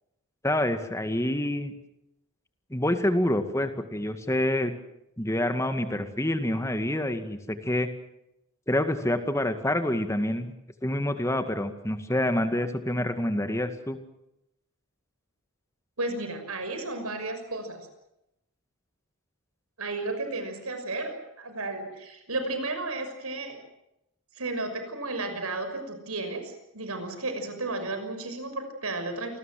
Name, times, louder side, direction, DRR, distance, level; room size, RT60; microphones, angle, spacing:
voice 1, 0.4-1.7 2.7-4.7 5.2-7.9 8.7-10.5 10.8-14.0, left 1 dB, 15° left, 8 dB, 2.1 m, -27 dB
voice 2, 16.0-17.9 19.8-21.1 21.4-23.6 24.4-29.4, right 2 dB, 80° right, 7 dB, 6.1 m, -33 dB
28.5 x 20.5 x 7.7 m, 0.86 s
head